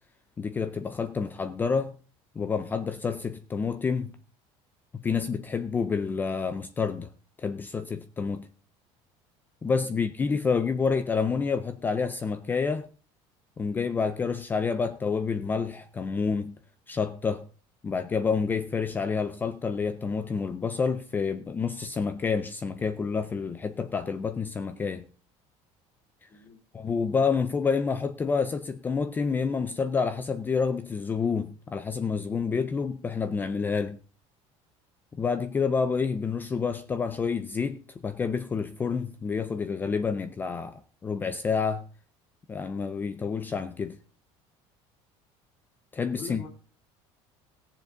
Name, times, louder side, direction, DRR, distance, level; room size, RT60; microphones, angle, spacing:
voice 1, 0.4-2.0 2.4-4.1 4.9-7.1 7.4-8.5 9.6-12.9 13.6-16.5 16.9-17.5 17.8-25.0 26.7-34.0 35.1-41.8 42.5-44.0 45.9-46.5, left 5 dB, 15° left, 0.4 m, -28 dB
voice 2, 46.2-46.5, left 4 dB, 40° left, 2.4 m, -42 dB
17.0 x 7.2 x 3.9 m
cardioid pair, 175°, 12 cm